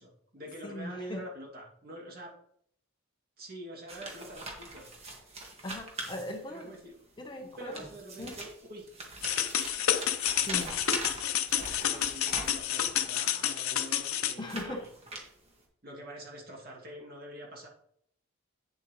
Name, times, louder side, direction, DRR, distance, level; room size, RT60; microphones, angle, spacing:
voice 1, 0.0-2.4 3.4-4.9 6.5-7.0 7.4-8.9 11.4-14.9 15.8-17.7, right 1 dB, 45° right, -1 dB, 2.3 m, -46 dB
voice 2, 0.6-1.2 5.6-6.7 7.2-7.9 8.2-8.4 10.5-10.8 14.4-14.9, left 1 dB, 20° left, 3 dB, 0.8 m, -39 dB
sound 1, 3.9-6.8 7.5-13.0 13.7-15.6, right 2 dB, 30° right, 1.7 m, -42 dB
sound 2, 9.2-14.3, left 10 dB, 85° left, 0.7 m, -29 dB
9.1 x 7.5 x 3.1 m, 0.67 s
head